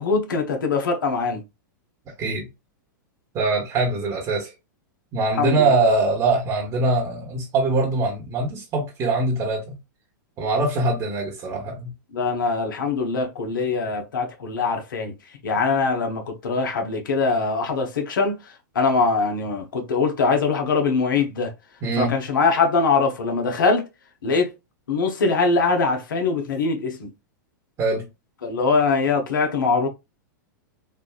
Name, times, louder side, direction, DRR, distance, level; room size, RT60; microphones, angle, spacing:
voice 1, 0.0-1.4 5.3-5.9 12.1-15.1 15.4-21.5 22.0-23.9 24.2-24.5 24.9-27.1 28.4-29.9, left 4 dB, 85° left, 0.9 m, -22 dB
voice 2, 3.3-4.5 5.1-9.7 10.4-11.9 21.8-22.1 27.8-28.1, right 3 dB, 30° right, 1.0 m, -23 dB
3.4 x 2.3 x 2.3 m
hypercardioid pair, 120°, 11 cm